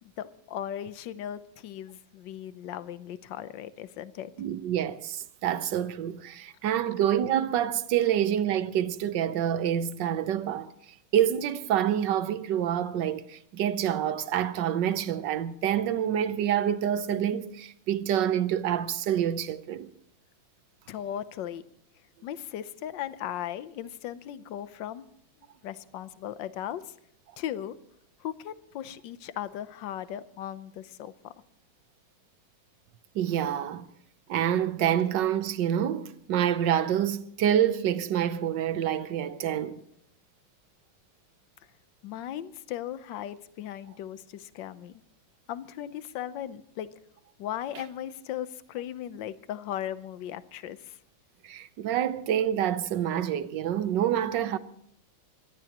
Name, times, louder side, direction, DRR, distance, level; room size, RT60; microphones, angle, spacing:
voice 1, 0.0-4.3 20.9-21.6 22.2-25.0 25.6-26.9 27.4-27.7 28.2-31.3 42.0-45.0 45.5-46.9 47.4-51.0, left 11 dB, 65° left, 1.4 m, -37 dB
voice 2, 4.4-10.7 11.1-19.9 33.1-33.9 34.3-39.8 51.4-54.6, right 10 dB, 65° right, 1.4 m, -27 dB
24.0 x 17.0 x 3.0 m
omnidirectional pair, 2.3 m